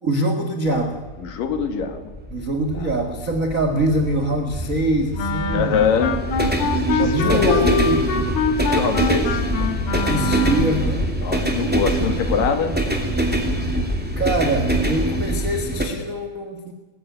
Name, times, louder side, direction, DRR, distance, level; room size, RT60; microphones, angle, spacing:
voice 1, 0.0-1.0 2.3-5.8 6.9-8.1 10.1-11.1 14.2-16.7, right 1 dB, 75° right, 5 dB, 0.7 m, -23 dB
sound 1, 0.7-15.9, right 1 dB, 5° right, 2.0 m, -24 dB
voice 2, 1.2-2.1 2.7-2.9 5.5-6.2 6.9-7.8 8.6-9.4 11.2-12.7, left 6 dB, 65° left, 8 dB, 3.3 m, -23 dB
Wind instrument woodwind instrument, 5.2-10.8, left 4 dB, 80° left, 3.7 m, -25 dB
20.5 x 15.0 x 9.4 m, 1.3 s
omnidirectional pair, 4.5 m